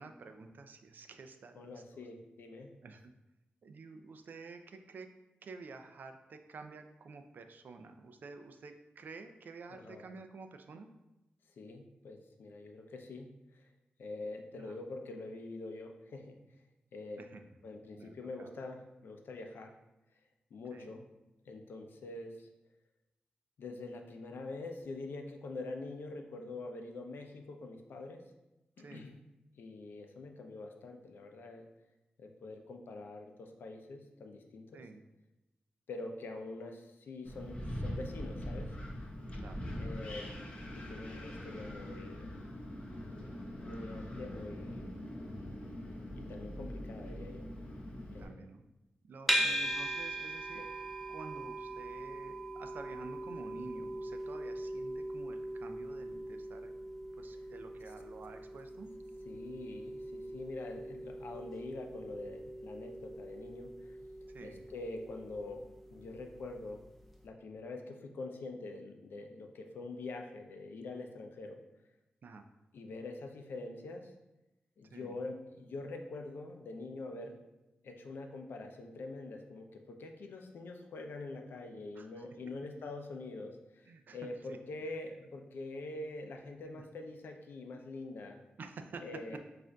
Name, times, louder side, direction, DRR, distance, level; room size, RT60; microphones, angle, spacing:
voice 1, 0.0-2.0 2.8-3.1 3.6-5.1 5.4-10.9 14.5-14.8 17.2-17.5 18.0-18.5 20.7-20.9 28.8-29.1 34.7-35.0 39.4-39.7 48.2-48.6 49.0-56.7 57.2-58.9 64.3-64.6 72.2-72.5 74.9-75.2 82.0-82.3 83.9-84.2 84.5-84.6 88.6-89.0, right 4 dB, 60° right, 7 dB, 0.3 m, -50 dB
voice 2, 1.6-2.7 9.7-10.0 11.6-13.6 14.0-16.4 16.9-17.3 17.6-19.7 20.5-21.0 21.4-22.5 23.6-28.2 28.8-29.1 29.6-31.6 32.2-34.8 35.9-38.7 39.8-40.3 40.7-42.3 43.6-44.9 46.1-47.5 48.1-48.5 49.3-49.7 50.5-50.7 59.3-64.0 64.4-65.6 65.9-66.8 67.2-71.6 72.7-74.1 74.8-77.4 77.8-83.9 84.1-88.4 89.0-89.4, left 2 dB, 85° left, 3 dB, 0.5 m, -45 dB
Wind, 37.2-48.2, equal, 35° left, 0.7 m, -42 dB
sound 1, 49.3-66.5, right 1 dB, ahead, 0.4 m, -40 dB
6.1 x 2.5 x 2.2 m, 0.97 s
wide cardioid pair, 140°, 3 cm